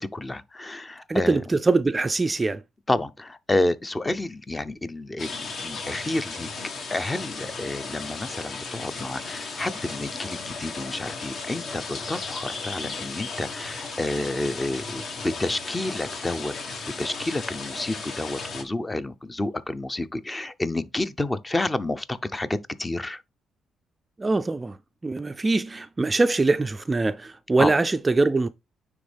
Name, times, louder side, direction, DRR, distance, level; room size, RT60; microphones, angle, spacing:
voice 1, 0.0-1.4 2.9-5.3 5.6-6.5 6.9-16.5 17.0-22.5 22.8-23.2 27.6-27.7, left 2 dB, 20° left, 0.6 m, -29 dB
voice 2, 1.1-2.6 24.2-24.8 25.0-28.5, right 3 dB, 20° right, 0.3 m, -23 dB
sound 1, 5.2-18.6, left 4 dB, 55° left, 1.4 m, -35 dB
9.4 x 3.5 x 3.4 m
cardioid pair, 90°, 0 cm